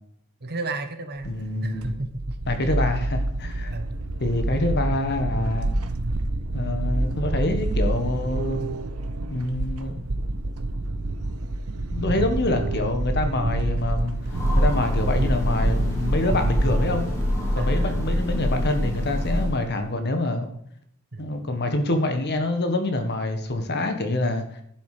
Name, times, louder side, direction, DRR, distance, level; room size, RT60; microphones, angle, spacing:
voice 1, 0.4-2.4 3.6-4.0 12.1-12.3 17.6-18.1 21.1-21.3, right 2 dB, 50° right, 8 dB, 1.2 m, -34 dB
voice 2, 1.2-1.9 2.5-3.7 4.2-5.7 6.5-8.6 9.3-10.0 11.9-14.2 14.5-17.0 17.5-20.5 21.2-24.4, left 2 dB, 50° left, 7 dB, 1.5 m, -26 dB
sound 1, 1.2-17.2, right 2 dB, 75° right, 0.9 m, -27 dB
Train, 14.0-19.8, left 1 dB, 15° left, 3.2 m, -26 dB
11.0 x 7.2 x 5.1 m, 0.71 s
head